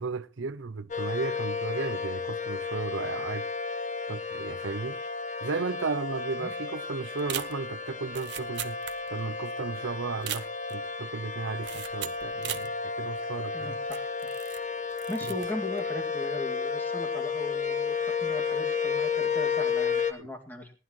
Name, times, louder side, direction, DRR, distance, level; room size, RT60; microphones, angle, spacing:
voice 1, 0.0-3.5 4.1-5.0 5.4-8.8 9.1-13.8 20.2-20.3, right 4 dB, 80° right, 0.6 m, -34 dB
sound 1, 0.9-20.1, left 5 dB, 40° left, 1.3 m, -32 dB
sound 2, 7.2-9.4 9.6-9.7 10.1-10.9 11.6-12.7 13.2-13.3 13.9-14.7 14.9-15.5 15.8-16.1, right 11 dB, 60° right, 1.0 m, -38 dB
voice 2, 13.5-14.3 15.1-20.7, left 1 dB, 10° left, 2.2 m, -38 dB
19.0 x 11.0 x 3.1 m
head